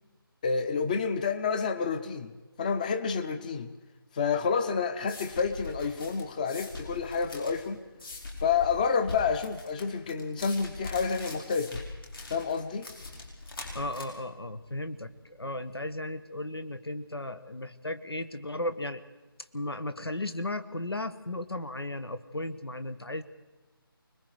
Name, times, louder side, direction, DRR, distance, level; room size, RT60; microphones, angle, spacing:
voice 1, 0.4-2.3 2.6-3.7 4.1-7.8 8.4-11.8 12.3-12.9, left 5 dB, 20° left, 9 dB, 0.8 m, -29 dB
sound 1, 4.6-15.9, left 2 dB, 70° left, 6.0 m, -43 dB
voice 2, 13.7-19.0 19.5-23.2, left 1 dB, 85° left, 12 dB, 1.6 m, -35 dB
25.0 x 21.0 x 4.9 m, 1.2 s
figure-of-eight pair, 160°, 13 cm